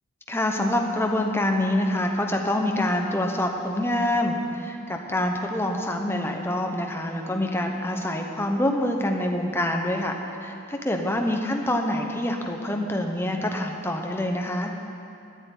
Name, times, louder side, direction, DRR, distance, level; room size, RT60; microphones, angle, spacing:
voice 1, 0.3-10.1 10.4-14.7, left 1 dB, 10° left, 2 dB, 1.0 m, -26 dB
10.5 x 9.5 x 9.3 m, 2.7 s
head